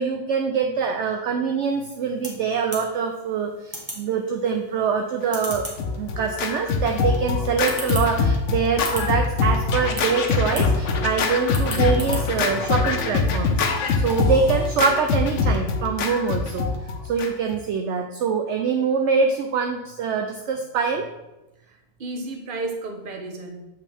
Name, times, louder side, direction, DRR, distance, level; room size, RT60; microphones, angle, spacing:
voice 1, 0.0-5.7 5.9-16.7 17.0-21.1, right 5 dB, 65° right, 4 dB, 0.8 m, -24 dB
sound 1, 1.6-14.4, equal, 15° right, 1.4 m, -40 dB
Scratching (performance technique), 5.5-17.6, left 4 dB, 65° left, 1.0 m, -23 dB
voice 2, 21.7-23.7, right 2 dB, 40° right, 3 dB, 1.1 m, -33 dB
7.5 x 5.5 x 3.4 m, 0.98 s
omnidirectional pair, 1.4 m